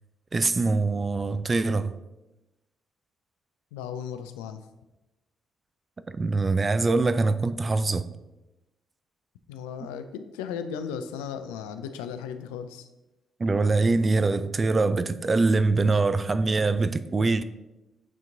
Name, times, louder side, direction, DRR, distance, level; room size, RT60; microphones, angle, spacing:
voice 1, 0.3-1.9 6.1-8.0 13.4-17.4, right 3 dB, 40° right, 0.4 m, -23 dB
voice 2, 3.7-4.6 9.5-12.9, left 7 dB, 90° left, 0.3 m, -36 dB
8.2 x 3.0 x 3.8 m
hypercardioid pair, 50°, 0 cm